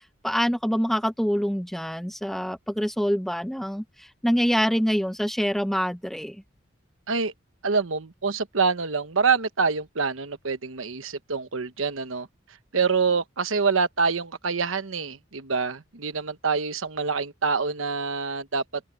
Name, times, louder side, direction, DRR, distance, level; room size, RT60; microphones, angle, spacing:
voice 1, 0.2-6.4, equal, ahead, 0.9 m, -25 dB
voice 2, 7.6-12.3 12.7-18.8, right 5 dB, 85° right, 1.1 m, -26 dB
open air
head